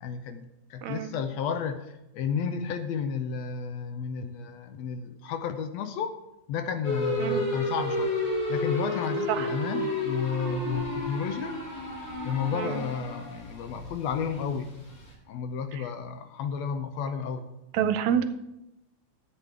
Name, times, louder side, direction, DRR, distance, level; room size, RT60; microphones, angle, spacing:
voice 1, 0.0-6.2 6.5-8.2 8.5-11.6 12.2-14.9 15.3-17.5, left 6 dB, 75° left, 9 dB, 1.7 m, -32 dB
voice 2, 0.8-1.1 7.2-7.4 9.3-9.5 12.5-12.8 17.7-18.3, right 9 dB, 85° right, 10 dB, 2.0 m, -27 dB
sound 1, 6.8-15.1, left 1 dB, 60° left, 3.5 m, -31 dB
13.5 x 8.4 x 3.6 m, 0.90 s
omnidirectional pair, 3.3 m